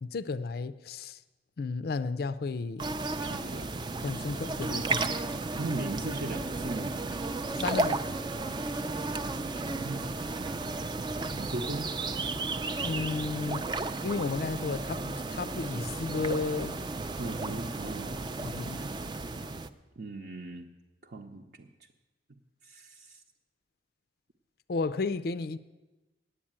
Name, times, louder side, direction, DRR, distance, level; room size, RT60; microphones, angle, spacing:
voice 1, 0.0-1.2 1.6-2.9 4.0-5.2 7.6-8.0 12.8-13.7 14.0-16.7 18.4-18.8 24.7-25.6, left 4 dB, 55° left, 0.4 m, -33 dB
sound 1, 2.8-19.7, right 3 dB, 25° right, 0.4 m, -33 dB
voice 2, 3.3-3.7 5.5-6.9 9.7-10.2 11.3-11.9 17.2-18.2 20.0-20.7 21.0-21.7 22.6-23.2, right 2 dB, 60° right, 0.8 m, -38 dB
9.9 x 8.6 x 8.8 m
head